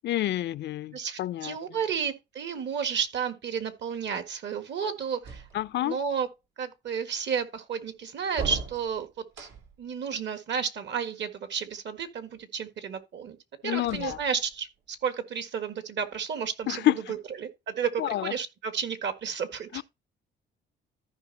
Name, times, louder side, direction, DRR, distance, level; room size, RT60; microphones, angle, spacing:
voice 1, 0.0-1.6 5.5-6.0 13.6-14.2 16.7-16.9 18.0-18.3 19.7-19.8, left 14 dB, 65° left, 0.4 m, -28 dB
voice 2, 0.9-5.5 5.8-6.3 6.6-9.1 9.4-9.5 9.8-13.4 13.6-19.8, right 6 dB, 65° right, 1.7 m, -32 dB
sound 1, 5.2-6.0 8.3-9.9 13.8-14.8, right 5 dB, 90° right, 3.1 m, -39 dB
14.5 x 5.3 x 2.9 m
cardioid pair, 90°, 20 cm